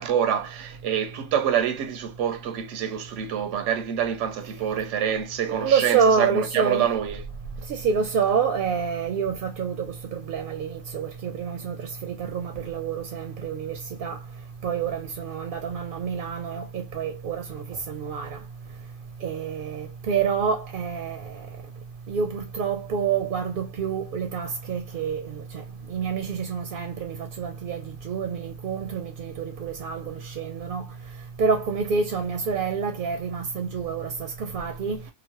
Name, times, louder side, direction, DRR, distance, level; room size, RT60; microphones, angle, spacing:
voice 1, 0.0-7.2, right 9 dB, 90° right, 0.9 m, -26 dB
voice 2, 5.5-6.9 7.7-14.2 14.6-18.4 19.2-21.4 22.1-25.6 25.9-30.9 31.4-35.0, right 6 dB, 60° right, 0.6 m, -27 dB
2.9 x 2.1 x 2.8 m
omnidirectional pair, 1.2 m